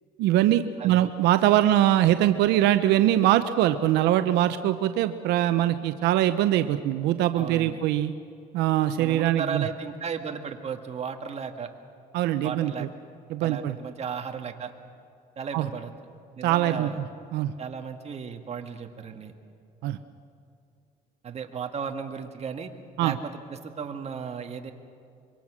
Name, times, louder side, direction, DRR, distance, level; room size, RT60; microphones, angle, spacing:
voice 1, 0.2-8.1 8.5-9.7 12.1-12.9 13.3-13.8 15.5-15.7 16.4-16.9 17.3-17.5 19.8-20.0 23.0-23.1, right 13 dB, 90° right, 10 dB, 0.7 m, -22 dB
voice 2, 0.8-1.1 7.3-7.8 9.0-11.7 12.4-12.9 13.4-14.7 15.4-15.9 16.4-17.0 17.6-19.3 21.2-22.7 23.0-24.7, right 6 dB, 40° right, 5 dB, 1.8 m, -35 dB
25.5 x 23.0 x 6.2 m, 2.4 s
cardioid pair, 110°, 17 cm